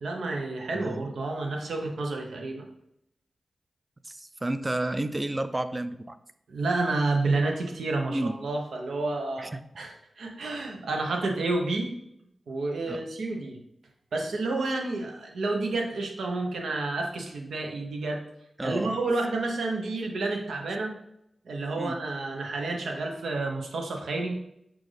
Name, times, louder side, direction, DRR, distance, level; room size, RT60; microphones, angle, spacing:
voice 1, 0.0-2.7 6.5-9.9 10.2-11.9 12.5-13.6 14.1-18.2 18.6-20.9 21.4-24.4, right 2 dB, 90° right, 2 dB, 0.8 m, -30 dB
voice 2, 0.7-1.1 4.0-6.2 8.1-8.4 9.4-9.6 12.9-13.0 18.6-19.0 21.8-22.0, right 1 dB, 25° right, 11 dB, 0.4 m, -31 dB
6.1 x 2.5 x 3.3 m, 0.77 s
cardioid pair, 55°, 0 cm